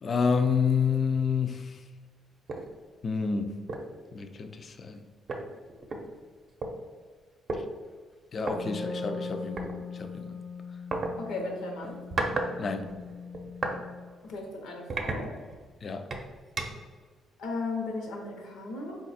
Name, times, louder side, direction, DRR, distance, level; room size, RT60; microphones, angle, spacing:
voice 1, 0.0-1.8 3.0-3.6 4.1-5.1 7.5-7.6 8.3-10.4 12.6-13.0 15.8-16.1, left 5 dB, 45° left, 7 dB, 0.3 m, -29 dB
sound 1, 2.5-2.7 3.1-3.3 3.7-4.0 4.9-5.0 5.3-6.7 7.5-7.6 8.4-8.6 9.6-9.7 10.9-11.1 11.8-12.5 12.8-13.8 14.3-14.4 14.9-15.7 16.1-16.9, right 3 dB, 45° right, 0.6 m, -33 dB
Wind instrument woodwind instrument, 8.4-14.1, left 4 dB, ahead, 0.6 m, -40 dB
voice 2, 11.2-12.0 14.2-15.3 17.4-19.0, left 3 dB, 85° left, 1 dB, 0.9 m, -36 dB
4.0 x 2.4 x 4.0 m, 1.5 s
cardioid pair, 90°, 0 cm